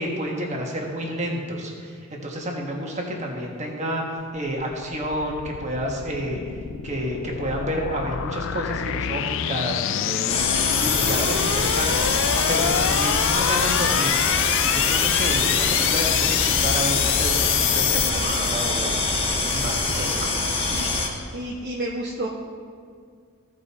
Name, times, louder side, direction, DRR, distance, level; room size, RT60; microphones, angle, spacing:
voice 1, 0.0-4.0 4.3-6.4 6.8-10.3 10.7-14.2 14.6-19.0 19.5-20.3, equal, 35° right, 0 dB, 1.5 m, -30 dB
sound 1, 4.7-18.1, left 11 dB, 65° left, 0.3 m, -25 dB
sound 2, 10.3-21.1, left 3 dB, 25° left, 1.4 m, -24 dB
voice 2, 21.3-22.3, right 1 dB, 55° right, -3 dB, 0.9 m, -30 dB
15.5 x 5.3 x 4.3 m, 2.1 s
head